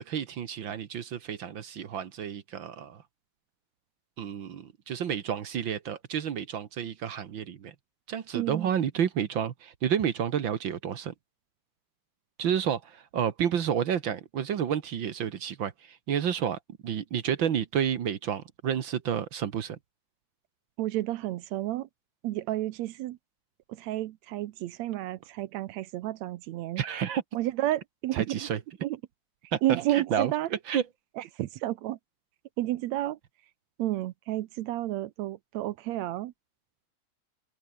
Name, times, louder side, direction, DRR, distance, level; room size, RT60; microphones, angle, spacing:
voice 1, 0.0-3.0 4.2-7.7 8.1-11.1 12.4-19.8 26.8-27.2 28.1-28.6 29.5-29.6 29.9-30.3 30.7-30.8, right 8 dB, 50° right, 1.6 m, -30 dB
voice 2, 8.3-8.7 20.8-21.9 22.2-23.2 23.7-26.8 27.3-28.5 28.8-29.0 29.6-30.5 31.2-32.0 32.6-33.2 33.8-36.3, right 15 dB, 75° right, 1.9 m, -31 dB
open air
omnidirectional pair, 3.4 m